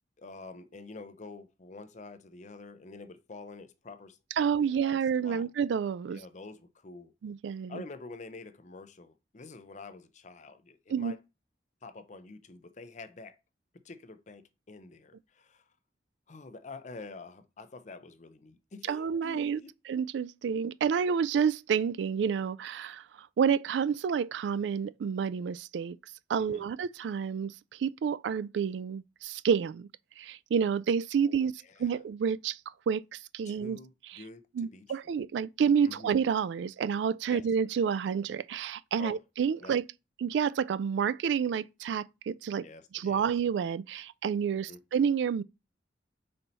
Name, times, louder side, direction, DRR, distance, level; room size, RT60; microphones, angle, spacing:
voice 1, 0.2-5.5 6.1-7.1 7.7-11.2 11.8-13.4 13.8-15.7 16.3-19.7 26.4-26.7 31.2-32.0 33.4-35.0 35.8-36.1 37.3-37.5 39.0-39.2 39.6-39.7 42.6-43.3 44.5-44.8, left 3 dB, 40° left, 0.6 m, -47 dB
voice 2, 4.4-6.2 7.2-7.8 10.9-11.1 18.9-19.6 19.9-23.0 23.4-26.0 26.3-29.9 30.2-32.6 32.9-33.8 34.5-39.8 40.2-42.6 42.9-45.4, right 7 dB, 80° right, 0.3 m, -29 dB
5.4 x 4.3 x 4.0 m
head